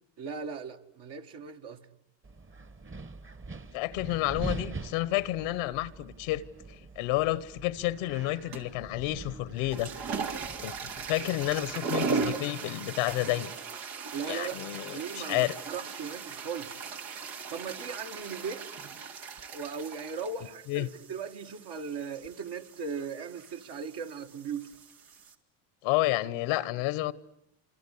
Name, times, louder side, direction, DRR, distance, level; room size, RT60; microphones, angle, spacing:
voice 1, 0.2-1.8 14.1-14.6 14.9-16.8 17.5-18.7 19.5-24.7, right 6 dB, 55° right, 2.2 m, -38 dB
Wind, 2.2-11.8, right 3 dB, 25° right, 1.4 m, -43 dB
voice 2, 3.7-6.4 7.0-9.9 10.6-10.7 11.1-13.5 14.3-15.5 20.7-20.9 25.8-27.1, left 17 dB, 90° left, 1.3 m, -30 dB
sound 1, 8.5-8.9 9.5-25.3, right 5 dB, 80° right, 2.9 m, -38 dB
27.0 x 26.0 x 8.5 m
supercardioid pair, 90°, 48 cm